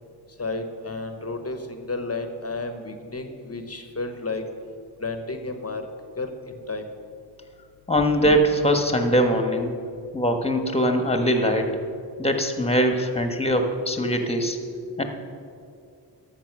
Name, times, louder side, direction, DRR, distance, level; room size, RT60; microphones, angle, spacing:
voice 1, 0.4-4.4 5.0-5.9 6.2-6.9, left 3 dB, 35° left, 7 dB, 1.0 m, -32 dB
voice 2, 7.9-9.7 10.1-11.6 12.2-14.6 15.0-15.1, equal, 15° left, 5 dB, 1.3 m, -22 dB
12.0 x 7.3 x 6.1 m, 2.3 s
wide cardioid pair, 75°, 43 cm